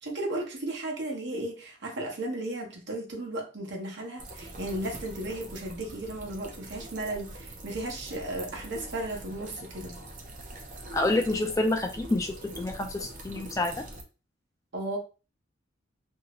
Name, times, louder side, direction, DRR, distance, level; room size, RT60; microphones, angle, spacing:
voice 1, 0.0-10.0 14.7-15.0, right 1 dB, 60° right, 1.0 m, -35 dB
sound 1, 4.2-14.0, right 1 dB, 40° right, 0.6 m, -43 dB
voice 2, 10.9-13.7, left 2 dB, 15° left, 0.3 m, -28 dB
2.7 x 2.7 x 3.0 m
head